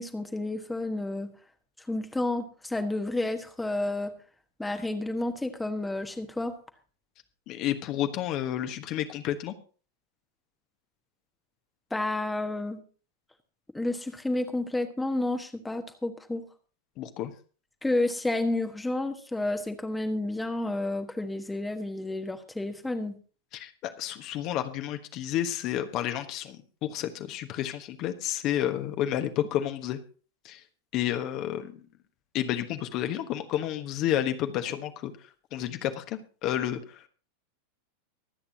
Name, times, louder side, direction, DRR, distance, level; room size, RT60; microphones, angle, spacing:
voice 1, 0.0-1.3 1.9-4.1 4.6-6.5 11.9-12.8 13.7-16.5 17.8-23.2, left 2 dB, 5° left, 6 dB, 1.3 m, -30 dB
voice 2, 7.5-9.5 17.0-17.3 23.5-30.0 30.4-30.6 30.9-31.8 32.3-35.1 35.5-37.1, left 11 dB, 40° left, 8 dB, 1.3 m, -31 dB
24.0 x 8.7 x 2.8 m, 0.38 s
figure-of-eight pair, 90°, 0 cm